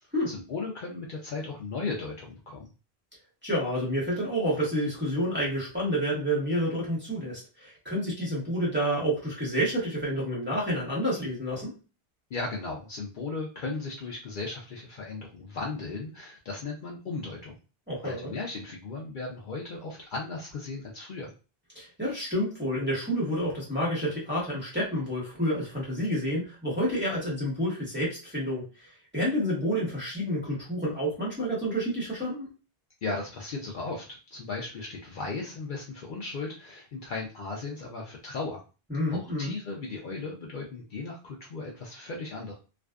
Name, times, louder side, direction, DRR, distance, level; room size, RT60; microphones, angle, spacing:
voice 1, 0.3-2.7 12.3-17.6 18.0-21.3 33.0-38.6 39.1-42.6, left 3 dB, 60° left, -2 dB, 0.6 m, -36 dB
voice 2, 3.4-11.7 17.9-18.3 21.7-32.5 38.9-39.6, equal, 10° right, -7 dB, 1.1 m, -29 dB
2.5 x 2.3 x 2.3 m, 0.33 s
omnidirectional pair, 1.0 m